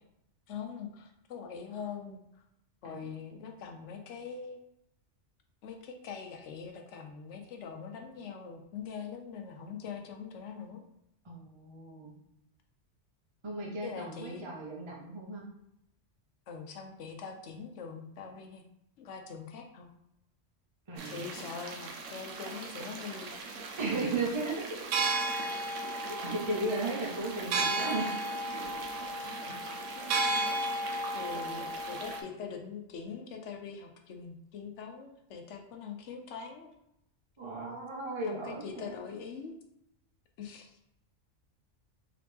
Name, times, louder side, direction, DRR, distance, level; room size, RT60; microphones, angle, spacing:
voice 1, 0.5-2.2 2.8-4.6 5.6-10.8 13.8-14.4 16.5-18.7 19.0-19.9 21.0-23.3 29.2-29.6 29.9-30.2 31.1-36.7 38.3-39.5 40.4-40.7, left 6 dB, 75° left, 4 dB, 1.0 m, -43 dB
voice 2, 2.8-3.2 11.2-12.1 13.4-15.4 20.9-21.3 23.8-24.7 26.2-28.1 37.4-39.0, right 2 dB, 30° right, -3 dB, 0.7 m, -35 dB
sound 1, 21.0-32.2, right 2 dB, 85° right, 1.0 m, -35 dB
3.9 x 3.0 x 3.4 m, 0.80 s
omnidirectional pair, 1.2 m